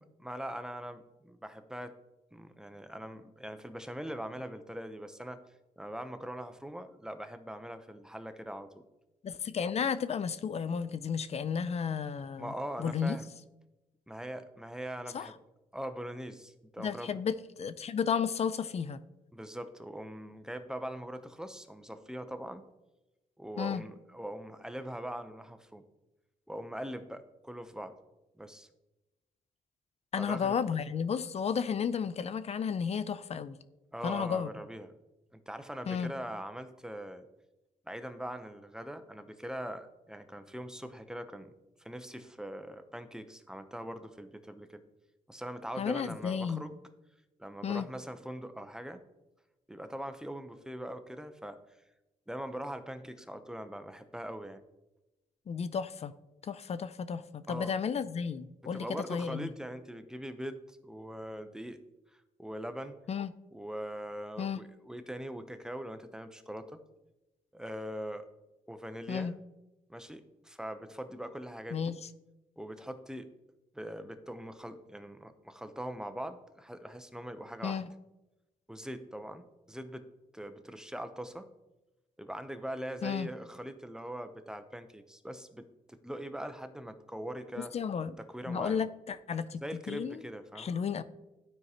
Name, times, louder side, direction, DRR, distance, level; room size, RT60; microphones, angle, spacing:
voice 1, 0.2-1.9 2.3-5.4 5.8-8.8 12.4-13.3 14.1-15.3 15.7-17.2 19.3-22.6 23.4-25.8 26.5-27.9 28.4-28.7 30.2-30.6 33.9-34.9 35.3-37.3 37.9-41.5 41.8-44.8 45.3-46.7 47.4-49.0 49.7-51.6 52.3-54.6 57.5-57.7 58.7-61.8 62.1-63.0 63.5-66.8 67.5-68.3 68.7-69.4 69.9-72.0 72.6-73.3 73.7-77.8 78.7-80.1 80.3-81.5 82.2-87.7 88.2-88.8 89.6-90.8, equal, 5° right, 9 dB, 0.7 m, -42 dB
voice 2, 9.2-12.5 12.8-13.2 15.1-15.3 16.8-19.0 23.6-23.8 30.1-33.6 34.0-34.5 35.9-36.1 45.8-46.6 47.6-47.9 55.5-56.1 56.4-59.5 63.1-63.3 64.4-64.6 69.1-69.3 71.7-72.1 77.6-77.9 83.0-83.3 87.7-88.1 88.5-89.6 89.9-90.2 90.6-91.0, left 6 dB, 45° left, 14 dB, 0.5 m, -33 dB
12.0 x 4.6 x 2.9 m, 1.0 s
cardioid pair, 70°, 15 cm